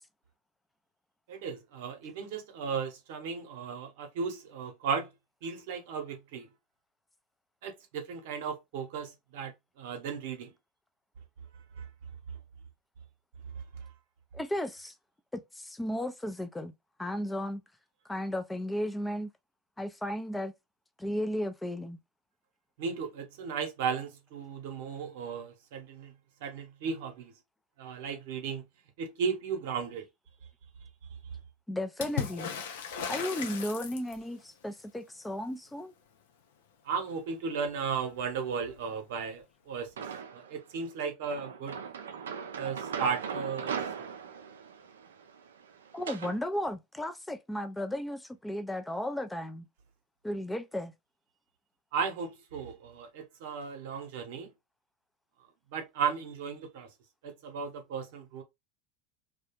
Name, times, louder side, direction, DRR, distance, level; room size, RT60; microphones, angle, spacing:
voice 1, 1.3-5.1 5.4-6.5 7.6-9.5 9.8-10.5 11.8-11.9 22.8-26.1 26.4-27.3 27.8-28.6 29.0-30.1 36.8-39.9 40.3-41.8 42.6-44.1 51.9-54.5 55.7-56.9 57.2-58.4, right 6 dB, 70° right, 0.8 m, -35 dB
voice 2, 14.3-14.9 15.3-16.7 17.0-17.6 18.1-19.3 19.8-20.5 21.0-22.0 31.7-32.5 33.1-35.9 45.9-49.7 50.2-50.9, left 1 dB, 10° left, 0.5 m, -34 dB
Water / Splash splatter, 32.0-34.4 37.7-37.8 38.0-38.8 39.9-40.0, left 7 dB, 75° left, 0.5 m, -37 dB
sound 1, 40.0-40.6 41.3-46.4, right 7 dB, 85° right, 0.4 m, -39 dB
2.3 x 2.2 x 2.9 m
hypercardioid pair, 85°, 0 cm